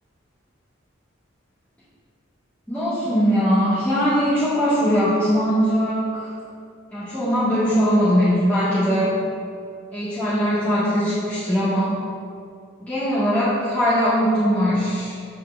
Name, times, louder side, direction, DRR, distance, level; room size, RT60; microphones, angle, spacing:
voice 1, 2.7-6.3 6.9-9.1 9.9-12.0 12.8-15.1, equal, 10° left, -14 dB, 1.9 m, -20 dB
8.6 x 8.5 x 2.6 m, 2.3 s
head